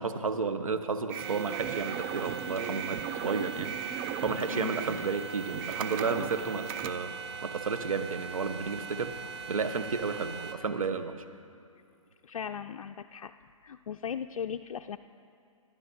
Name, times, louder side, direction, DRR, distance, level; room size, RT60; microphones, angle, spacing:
voice 1, 0.0-7.1 7.4-9.2 9.5-11.2, right 4 dB, 80° right, 9 dB, 1.0 m, -32 dB
sound 1, 1.1-6.9, right 9 dB, 25° right, 0.5 m, -37 dB
sound 2, 1.2-10.5, right 5 dB, 55° right, 1.2 m, -41 dB
voice 2, 4.5-4.9 8.6-8.7 12.2-13.3 13.6-15.0, left 8 dB, 75° left, 7 dB, 0.4 m, -38 dB
25.0 x 11.0 x 2.7 m, 2.6 s
hypercardioid pair, 135°, 17 cm